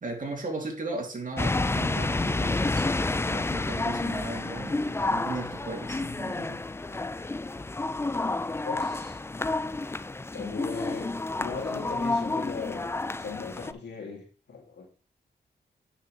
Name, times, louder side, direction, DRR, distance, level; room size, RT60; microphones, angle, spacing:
voice 1, 0.0-2.9 3.3-6.6, right 3 dB, 50° right, 1 dB, 3.0 m, -36 dB
sound 1, 1.4-13.7, left 2 dB, 15° left, 0.4 m, -30 dB
voice 2, 8.6-9.2 10.3-14.9, left 5 dB, 85° left, 0 dB, 2.6 m, -38 dB
9.8 x 6.2 x 3.3 m, 0.36 s
cardioid pair, 65°, 18 cm